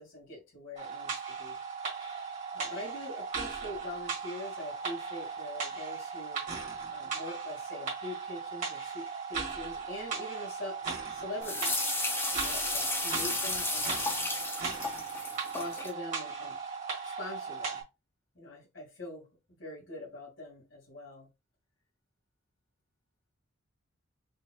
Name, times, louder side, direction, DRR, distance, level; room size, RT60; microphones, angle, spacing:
voice 1, 0.0-1.6 2.5-6.4 6.9-11.8 12.3-14.0 14.7-15.0 15.5-16.6 17.0-17.8 18.3-19.3 19.6-21.3, left 1 dB, 60° left, 2.2 m, -43 dB
sound 1, 0.8-17.8, right 5 dB, 35° right, 1.7 m, -37 dB
sound 2, 11.4-15.9, left 2 dB, 10° left, 0.6 m, -33 dB
5.4 x 3.2 x 2.3 m
head